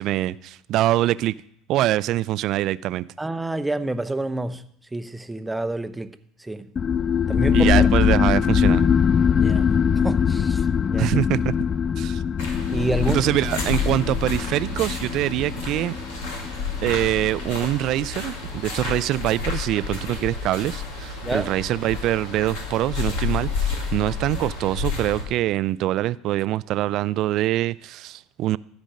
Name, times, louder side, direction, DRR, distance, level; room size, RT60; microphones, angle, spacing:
voice 1, 0.0-1.3 1.7-3.1 7.5-8.9 11.0-11.5 12.0-12.2 13.1-15.9 16.8-28.6, right 14 dB, 60° right, 0.3 m, -24 dB
voice 2, 3.2-4.7 4.9-6.1 6.4-6.7 7.3-7.9 9.4-9.7 10.0-10.7 10.9-11.1 12.7-13.2 21.2-21.5, right 2 dB, 10° right, 0.7 m, -28 dB
sound 1, 6.8-17.9, left 7 dB, 35° left, 0.3 m, -22 dB
sound 2, 12.4-25.2, left 5 dB, 75° left, 2.0 m, -30 dB
14.0 x 5.1 x 6.5 m
hypercardioid pair, 75°, 0 cm